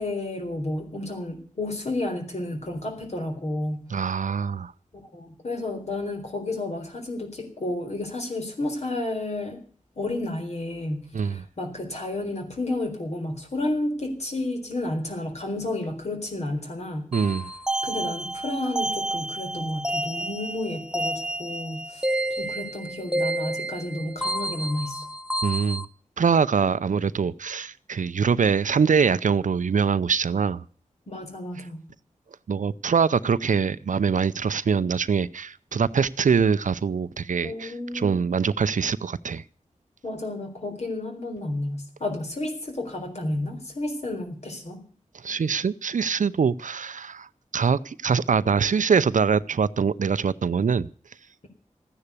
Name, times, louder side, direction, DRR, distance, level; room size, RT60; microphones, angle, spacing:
voice 1, 0.0-4.1 4.9-9.6 10.0-17.1 17.8-25.1 31.1-31.8 37.4-38.2 40.0-44.8, left 2 dB, 55° left, 4.0 m, -31 dB
voice 2, 3.9-4.7 11.1-11.4 17.1-17.5 25.4-25.9 26.2-30.6 32.5-39.4 45.2-47.3 47.5-50.9, right 6 dB, 75° right, 0.6 m, -23 dB
sound 1, 17.1-25.8, right 1 dB, 5° right, 0.8 m, -30 dB
14.0 x 9.9 x 8.3 m
wide cardioid pair, 80°, 13 cm